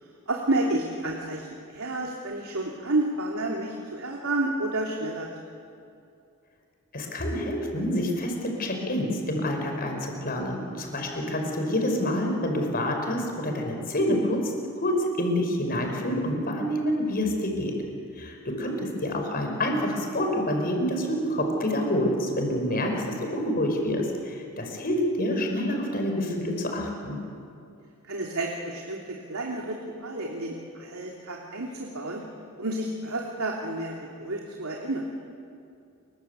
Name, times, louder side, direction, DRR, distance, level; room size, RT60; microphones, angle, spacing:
voice 1, 0.3-5.3 18.6-18.8 28.0-32.2 32.6-35.0, right 2 dB, 80° right, -1 dB, 3.0 m, -30 dB
voice 2, 6.9-14.5 14.8-17.7 18.1-27.2, left 1 dB, 45° left, 2 dB, 5.6 m, -27 dB
29.0 x 23.5 x 8.3 m, 2.6 s
head